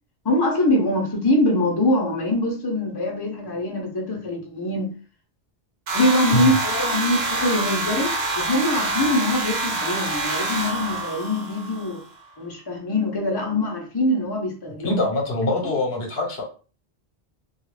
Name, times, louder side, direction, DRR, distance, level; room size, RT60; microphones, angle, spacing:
voice 1, 0.2-4.9 5.9-12.0 12.4-15.0, left 1 dB, 30° left, 0.6 m, -23 dB
sound 1, 5.9-12.0, right 2 dB, 85° right, 0.9 m, -26 dB
voice 2, 14.8-16.4, left 1 dB, 75° left, 1.1 m, -24 dB
2.4 x 2.2 x 3.1 m
omnidirectional pair, 1.0 m